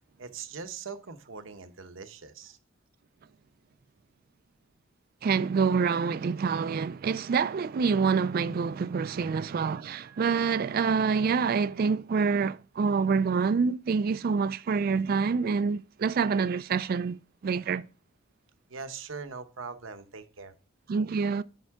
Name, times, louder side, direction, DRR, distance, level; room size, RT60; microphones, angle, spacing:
voice 1, 0.2-2.6 9.0-9.3 9.9-10.4 18.7-20.5, right 5 dB, 70° right, 0.9 m, -42 dB
voice 2, 5.2-17.2 17.4-17.9 20.9-21.4, right 5 dB, 45° right, 0.3 m, -26 dB
9.2 x 5.3 x 3.5 m
head